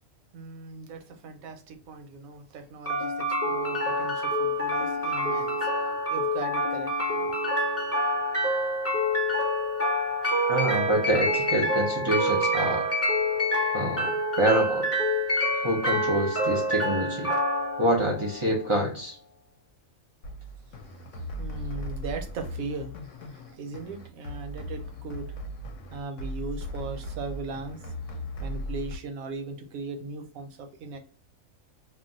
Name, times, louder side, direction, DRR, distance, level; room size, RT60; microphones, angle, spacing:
voice 1, 0.3-5.7 6.1-7.3 21.4-25.3 25.9-27.8 28.4-31.0, right 3 dB, 90° right, 1.0 m, -38 dB
sound 1, 2.9-18.9, equal, 15° left, 0.6 m, -27 dB
voice 2, 10.5-12.9 13.7-14.8 15.6-17.3 17.8-19.2, right 1 dB, 35° right, 0.5 m, -26 dB
sound 2, 20.2-29.0, equal, 75° left, 0.9 m, -37 dB
2.5 x 2.0 x 3.8 m
omnidirectional pair, 1.4 m